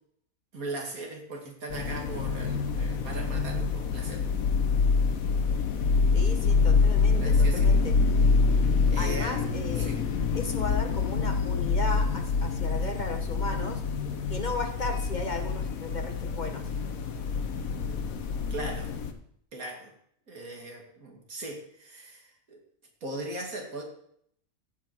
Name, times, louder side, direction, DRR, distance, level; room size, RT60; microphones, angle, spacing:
voice 1, 0.5-4.2 7.1-7.9 8.9-9.4 9.8-10.0 18.5-18.9 19.5-19.9 20.3-22.6 23.0-23.8, right 2 dB, 85° right, 1 dB, 2.7 m, -38 dB
sound 1, 1.7-19.1, left 4 dB, 80° left, 1.4 m, -26 dB
voice 2, 6.1-7.9 9.0-9.9 10.3-13.8 14.3-16.7, left 2 dB, 35° left, 5 dB, 1.2 m, -35 dB
14.0 x 7.8 x 4.5 m, 0.67 s
omnidirectional pair, 1.4 m